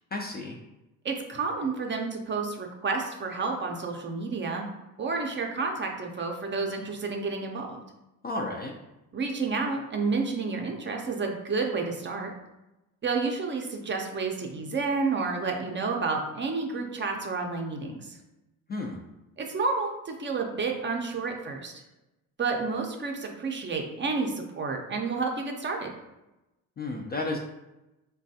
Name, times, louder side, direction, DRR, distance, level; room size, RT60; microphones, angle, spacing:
voice 1, 0.1-0.6 8.2-8.7 18.7-19.0 26.8-27.4, left 2 dB, 25° left, 1 dB, 0.3 m, -32 dB
voice 2, 1.0-4.7 5.0-7.8 9.1-12.3 13.0-18.2 19.4-21.7 22.4-25.9, right 4 dB, 30° right, 2 dB, 0.5 m, -30 dB
3.1 x 2.3 x 2.6 m, 0.97 s
supercardioid pair, 75°, 39 cm